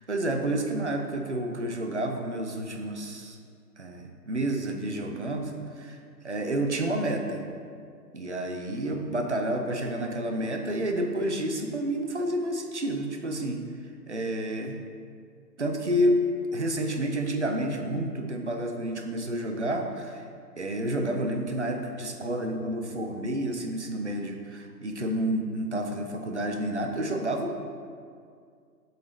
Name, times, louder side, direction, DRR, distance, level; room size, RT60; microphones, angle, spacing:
voice 1, 0.1-3.4 3.8-6.0 6.2-7.4 8.1-13.6 14.1-14.8 15.6-16.2 16.5-20.2 20.6-27.7, right 1 dB, 45° right, 3 dB, 0.5 m, -29 dB
7.6 x 4.0 x 3.2 m, 2.2 s
figure-of-eight pair, 155°, 50 cm